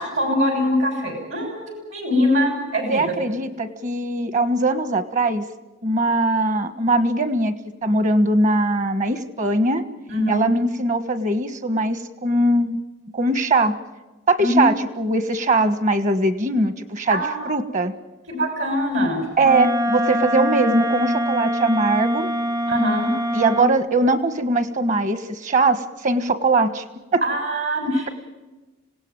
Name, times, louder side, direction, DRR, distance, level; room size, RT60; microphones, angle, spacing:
voice 1, 0.0-3.1 10.1-10.5 14.4-14.7 17.1-17.5 18.3-19.2 22.7-23.1 27.2-28.1, left 1 dB, 65° right, 4 dB, 6.4 m, -22 dB
voice 2, 2.9-5.4 5.8-7.5 7.8-9.8 10.3-12.8 13.1-13.7 14.3-17.9 19.4-22.3 23.3-26.8 27.1-27.2, right 2 dB, 40° right, 11 dB, 1.4 m, -21 dB
Wind instrument woodwind instrument, 19.4-23.8, equal, 15° right, 0.7 m, -24 dB
26.0 x 17.5 x 9.0 m, 1.1 s
head